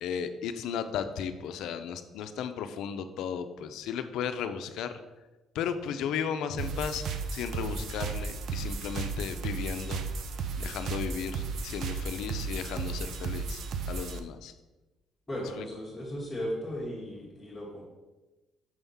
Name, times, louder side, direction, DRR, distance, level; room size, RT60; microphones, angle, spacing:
voice 1, 0.0-5.0 5.5-7.0 7.3-10.0 10.6-13.6 13.9-14.5 15.6-15.7, left 7 dB, 80° left, 10 dB, 0.5 m, -35 dB
sound 1, 6.6-14.2, right 5 dB, 60° right, 0.6 m, -34 dB
voice 2, 15.3-17.8, equal, 10° left, -7 dB, 1.5 m, -36 dB
6.3 x 3.5 x 5.5 m, 1.1 s
cardioid pair, 135°, 0 cm